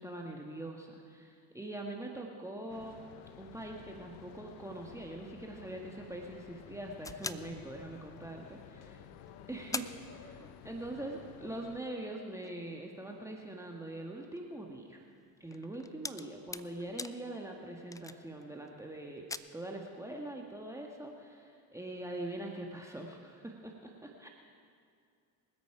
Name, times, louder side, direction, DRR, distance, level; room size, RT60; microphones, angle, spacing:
voice 1, 0.0-3.0 3.4-9.0 9.5-9.9 10.6-15.1 15.4-24.3, right 1 dB, 5° right, 0 dB, 1.6 m, -43 dB
sound 1, 2.7-11.8, left 9 dB, 80° left, 0.9 m, -53 dB
sound 2, 7.0-8.4 9.0-9.1 9.3-9.4 9.7-10.9 11.2-11.3 11.9-18.7 19.1-19.4, left 3 dB, 10° left, 0.3 m, -45 dB
voice 2, 8.7-9.0 9.4-10.4 10.9-11.3, left 2 dB, 35° left, 2 dB, 2.7 m, -56 dB
24.5 x 8.3 x 5.0 m, 2.3 s
supercardioid pair, 80°, 43 cm